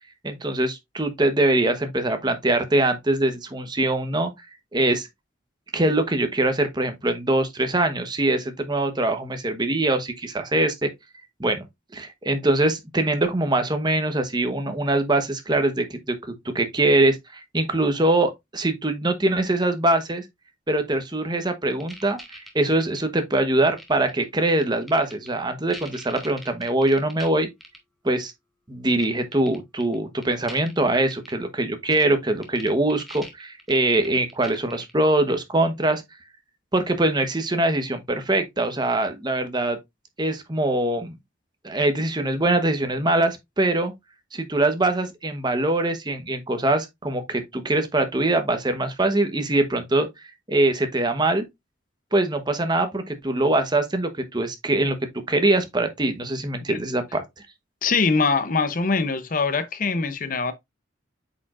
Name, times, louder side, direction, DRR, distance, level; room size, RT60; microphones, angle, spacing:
voice 1, 0.2-4.3 4.7-5.1 5.7-10.9 11.4-11.7 11.9-20.2 20.7-27.5 28.0-28.3 28.7-36.0 36.7-39.8 40.2-41.1 41.6-43.9 44.3-51.4 52.1-55.0 55.3-57.2, right 2 dB, 20° right, 1.0 m, -23 dB
sound 1, 21.7-23.2 23.7-24.2 24.6-25.3 25.7-27.3 27.6-27.8 29.0-29.1 29.3-30.0 30.2-30.7 31.1-31.3 31.9-32.0 32.4-34.9, equal, ahead, 1.3 m, -42 dB
voice 2, 57.8-60.5, left 4 dB, 45° left, 0.7 m, -23 dB
8.1 x 5.0 x 2.4 m
head